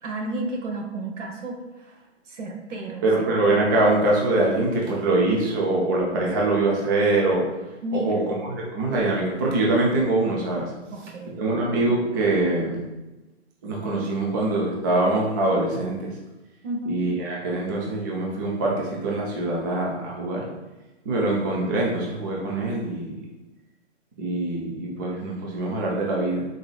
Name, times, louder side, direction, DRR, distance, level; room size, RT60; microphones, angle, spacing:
voice 1, 0.0-3.1 7.8-8.2 10.9-11.4 16.6-17.0, right 2 dB, 80° right, 0 dB, 1.2 m, -32 dB
voice 2, 3.0-7.4 8.0-8.2 8.5-10.7 11.4-12.8 13.6-16.1 16.9-20.5 21.1-23.1 24.2-26.5, right 2 dB, 20° right, -3 dB, 0.4 m, -23 dB
3.9 x 3.8 x 2.3 m, 1.1 s
hypercardioid pair, 135°, 36 cm